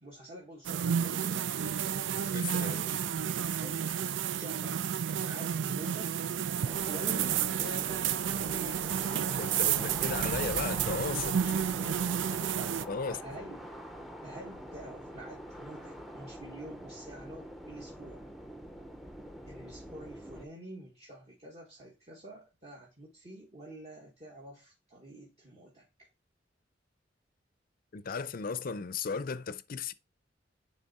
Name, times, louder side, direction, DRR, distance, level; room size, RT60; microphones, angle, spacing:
voice 1, 0.0-1.9 2.6-3.0 3.5-6.3 6.9-8.1 8.4-9.1 11.6-13.6 14.2-18.3 19.5-25.8, right 1 dB, 35° right, 1.5 m, -47 dB
sound 1, 0.6-12.8, right 8 dB, 85° right, 0.4 m, -31 dB
voice 2, 2.3-2.8 9.4-11.4 12.9-13.2 27.9-29.9, left 5 dB, 50° left, 0.5 m, -35 dB
sound 2, 6.6-20.5, equal, ahead, 0.7 m, -44 dB
10.0 x 3.4 x 4.1 m
head